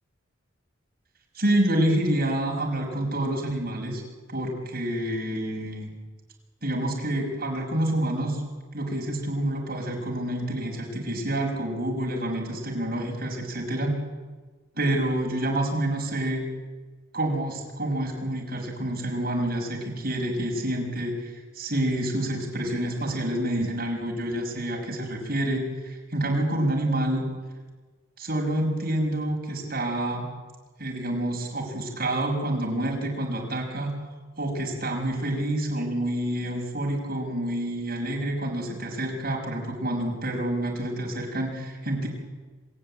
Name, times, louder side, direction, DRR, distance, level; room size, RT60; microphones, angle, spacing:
voice 1, 1.3-4.0 4.3-5.9 6.6-8.4 8.7-13.9 14.8-16.4 17.1-27.3 28.2-30.3 30.8-33.9 34.4-42.1, right 1 dB, 50° right, 0 dB, 5.8 m, -28 dB
26.5 x 16.0 x 9.9 m, 1.4 s
head